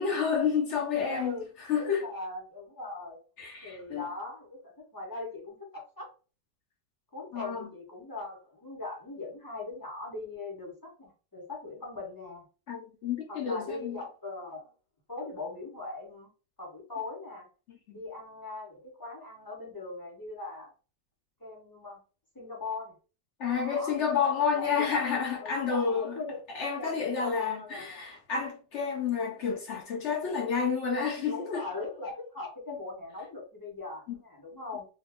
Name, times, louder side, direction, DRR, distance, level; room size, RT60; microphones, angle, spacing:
voice 1, 0.0-1.4 1.7-2.0 3.4-4.1 7.3-7.7 12.7-14.0 17.7-18.0 23.4-26.2 26.5-31.7 34.1-34.2, left 6 dB, 70° left, 0.6 m, -30 dB
voice 2, 1.0-1.5 1.8-3.2 3.6-6.1 7.1-12.4 13.3-14.7 15.1-16.3 16.6-17.5 17.9-20.7 21.4-22.0 22.3-22.9 23.5-23.9 24.5-25.0 25.4-26.4 26.8-28.1 31.3-34.9, left 3 dB, 15° left, 0.8 m, -40 dB
2.8 x 2.3 x 3.4 m
omnidirectional pair, 1.9 m